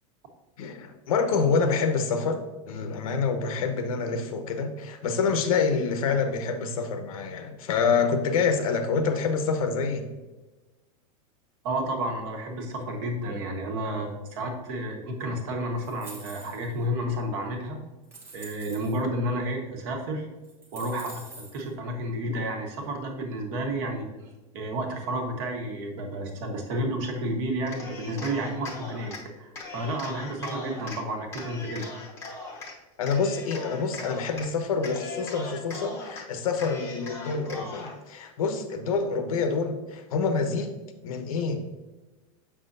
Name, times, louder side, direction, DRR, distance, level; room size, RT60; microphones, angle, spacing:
voice 1, 0.6-2.4 2.7-10.1 33.0-40.7 41.0-41.6, left 5 dB, 80° left, 7 dB, 1.0 m, -27 dB
voice 2, 11.6-17.8 18.3-20.3 20.7-21.2 21.5-24.0 24.5-29.1 29.4-31.9, right 1 dB, 45° right, 2 dB, 1.3 m, -31 dB
sound 1, 15.8-16.8 17.4-17.5 18.0-19.0 19.9-20.0 20.4-21.7, right 3 dB, 15° right, 1.0 m, -46 dB
Cheering, 27.6-29.2 29.5-31.0 31.3-32.7 33.1-34.5 34.8-36.2 36.6-38.0, left 3 dB, 15° left, 0.9 m, -40 dB
7.2 x 6.1 x 2.6 m, 1.1 s
supercardioid pair, 170°, 18 cm